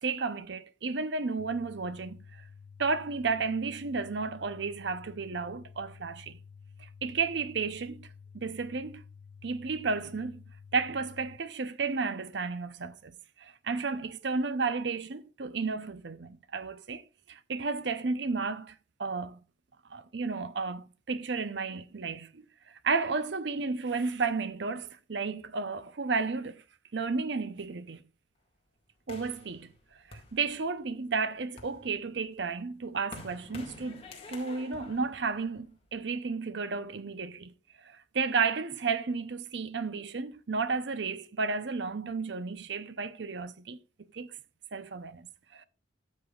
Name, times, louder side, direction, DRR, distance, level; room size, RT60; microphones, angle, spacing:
voice 1, 0.0-2.4 2.8-6.4 6.8-8.1 8.3-9.0 9.4-10.4 10.7-13.1 13.4-17.0 17.3-19.4 19.9-26.6 26.9-28.0 29.1-29.7 30.1-34.0 34.3-43.8 44.1-44.4 44.7-45.6, right 4 dB, 65° right, 0.7 m, -33 dB
sound 1, 1.4-11.4, left 6 dB, 90° left, 0.6 m, -51 dB
sound 2, 29.1-30.9 31.4-36.0, left 2 dB, 30° left, 2.0 m, -49 dB
13.0 x 7.4 x 2.4 m
head